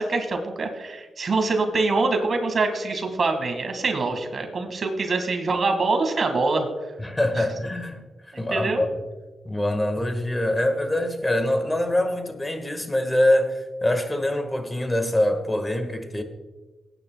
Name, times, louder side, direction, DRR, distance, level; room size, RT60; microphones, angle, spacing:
voice 1, 0.0-6.7 7.4-7.5 8.3-8.8, right 3 dB, 55° right, 2.0 m, -24 dB
voice 2, 7.0-8.0 8.3-8.9 9.4-16.2, left 1 dB, 15° left, 1.7 m, -24 dB
19.5 x 9.8 x 2.3 m
cardioid pair, 75°, 0 cm